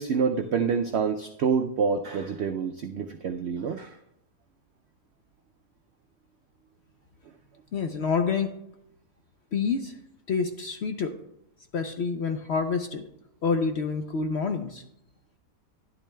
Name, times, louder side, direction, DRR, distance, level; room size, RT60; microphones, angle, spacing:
voice 1, 0.0-3.9, right 6 dB, 80° right, 5 dB, 0.6 m, -27 dB
voice 2, 7.7-8.6 9.5-10.0 10.3-11.2 11.7-13.0 13.4-14.8, left 5 dB, 65° left, 6 dB, 0.7 m, -27 dB
12.0 x 11.0 x 2.2 m, 0.79 s
omnidirectional pair, 1.7 m